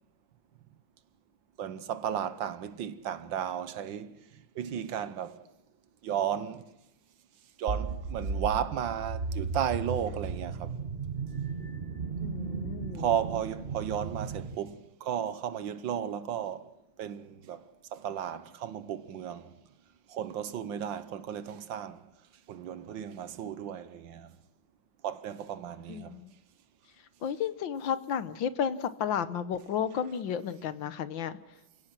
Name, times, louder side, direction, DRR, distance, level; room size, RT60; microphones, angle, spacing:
voice 1, 1.6-4.2 4.5-5.4 6.0-6.7 7.6-10.8 12.9-16.7 17.0-17.6 17.9-19.5 20.1-22.0 22.5-24.3 25.0-26.2, right 9 dB, 70° right, 1.6 m, -34 dB
sound 1, 7.7-14.6, right 4 dB, 35° right, 1.2 m, -35 dB
voice 2, 12.2-13.0 25.9-26.3 27.2-31.4, left 8 dB, 70° left, 1.7 m, -32 dB
28.5 x 17.0 x 6.0 m
omnidirectional pair, 2.2 m